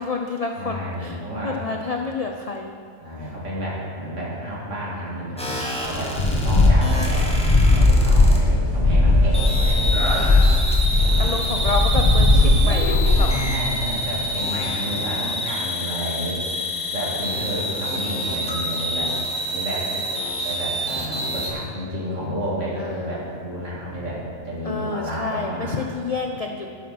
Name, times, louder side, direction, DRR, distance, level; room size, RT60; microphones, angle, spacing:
voice 1, 0.0-2.7 6.4-6.5 10.2-10.8 11.2-13.4 14.6-15.0 19.9-20.4 22.8-23.2 24.6-26.7, left 3 dB, 55° left, 3 dB, 0.4 m, -29 dB
voice 2, 0.5-1.6 3.0-6.2 6.4-10.0 11.0-11.6 13.1-16.5 16.9-19.2 19.5-19.9 20.4-25.8, equal, 60° right, -6 dB, 2.7 m, -30 dB
sound 1, 5.4-8.4 9.3-21.5, equal, 5° left, 1.2 m, -28 dB
sound 2, 6.2-13.2, left 2 dB, 25° left, 1.1 m, -17 dB
12.0 x 5.8 x 5.9 m, 2.3 s
omnidirectional pair, 1.4 m